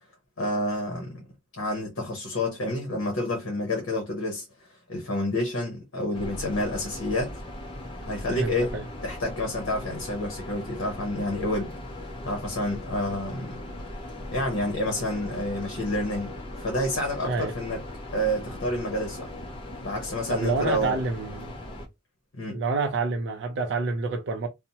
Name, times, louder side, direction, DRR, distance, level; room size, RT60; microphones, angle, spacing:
voice 1, 0.4-1.2 1.6-4.4 4.9-7.3 8.0-8.7 9.0-11.7 12.2-13.5 14.3-17.8 18.1-19.3 19.8-20.9 22.3-22.6, left 1 dB, 65° left, 0.8 m, -29 dB
sound 1, 6.1-21.9, left 1 dB, 25° left, 0.5 m, -39 dB
voice 2, 8.3-8.9 17.2-17.5 20.3-21.5 22.5-24.5, right 3 dB, 55° right, 0.4 m, -28 dB
2.7 x 2.0 x 2.7 m
head